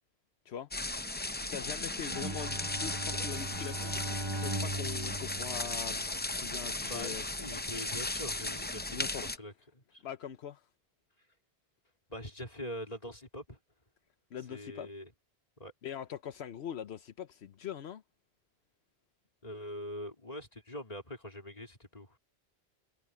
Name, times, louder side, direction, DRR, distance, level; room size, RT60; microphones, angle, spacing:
sound 1, 0.7-9.4, left 2 dB, 15° left, 0.4 m, -36 dB
voice 1, 1.4-6.0 6.3-7.2 8.9-9.4 10.0-10.7 14.3-14.9 15.8-18.0, left 9 dB, 80° left, 1.0 m, -42 dB
Bowed string instrument, 2.1-6.5, right 1 dB, 25° right, 1.2 m, -39 dB
voice 2, 6.9-10.0 12.1-13.6 14.5-15.1 15.6-15.7 19.4-22.2, left 1 dB, 40° left, 3.9 m, -43 dB
omnidirectional pair, 1.1 m